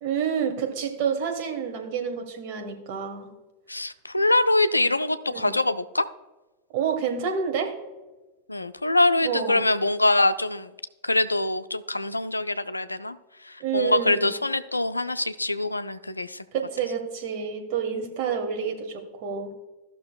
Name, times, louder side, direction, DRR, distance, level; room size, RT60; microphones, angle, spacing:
voice 1, 0.0-3.3 5.3-5.6 6.7-7.7 9.2-9.6 13.6-14.3 16.5-19.5, right 7 dB, 45° right, 4 dB, 1.4 m, -28 dB
voice 2, 3.7-6.1 8.5-10.7 11.0-13.2 13.4-16.4, left 2 dB, 85° left, 11 dB, 0.4 m, -24 dB
15.0 x 6.1 x 2.3 m, 1.1 s
figure-of-eight pair, 90°, 0 cm